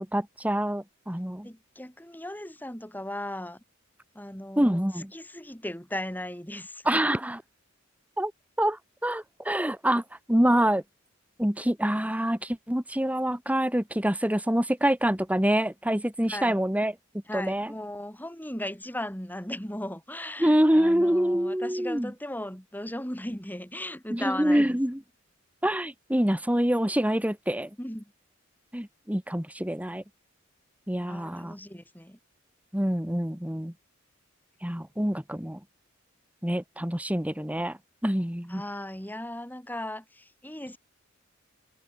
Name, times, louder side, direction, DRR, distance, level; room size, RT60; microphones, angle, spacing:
voice 1, 0.0-1.5 4.6-5.1 6.8-7.4 8.2-8.3 8.6-10.0 10.3-10.8 11.4-16.9 17.3-17.7 20.4-22.1 24.1-25.0 25.6-27.7 28.7-30.0 30.9-31.5 32.7-33.7 34.6-35.6 36.4-37.8 38.0-38.6, equal, 5° right, 1.7 m, -26 dB
voice 2, 1.4-3.6 4.1-4.8 5.1-7.0 16.3-16.6 17.3-24.8 27.8-28.1 31.1-32.2 38.5-40.8, left 1 dB, 10° left, 5.0 m, -37 dB
head